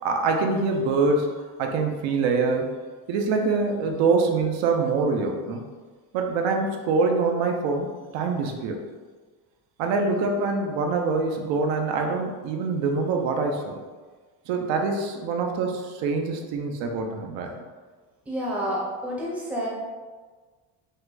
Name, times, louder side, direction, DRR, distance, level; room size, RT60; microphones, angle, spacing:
voice 1, 0.0-1.3 1.6-2.7 3.1-5.6 6.1-8.8 9.8-13.8 14.5-17.5, right 4 dB, 75° right, 3 dB, 0.8 m, -25 dB
voice 2, 18.3-19.7, equal, 5° right, -5 dB, 0.6 m, -29 dB
5.3 x 2.2 x 3.8 m, 1.4 s
cardioid pair, 170°, 44 cm